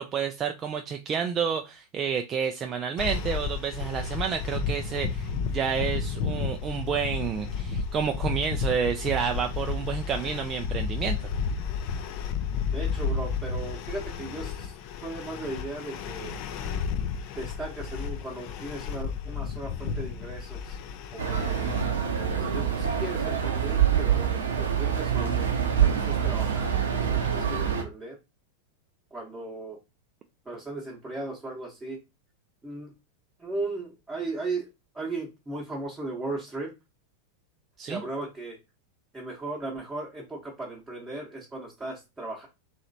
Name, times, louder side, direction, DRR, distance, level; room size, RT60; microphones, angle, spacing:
voice 1, 0.0-11.3 37.8-38.0, right 7 dB, 25° right, 5 dB, 0.3 m, -30 dB
sound 1, 3.0-21.8, left 5 dB, 45° left, 0.4 m, -32 dB
voice 2, 12.7-14.7 15.0-16.3 17.3-20.8 21.1-21.7 22.4-25.5 25.8-28.2 29.1-29.8 30.4-32.0 32.6-32.9 33.4-34.7 34.9-36.7 37.9-38.6 39.1-42.5, right 2 dB, 10° right, -3 dB, 0.9 m, -37 dB
Street Ambience Morocco, 21.2-27.8, right 8 dB, 65° right, 0.6 m, -25 dB
3.1 x 2.9 x 2.6 m, 0.25 s
figure-of-eight pair, 90°, 0 cm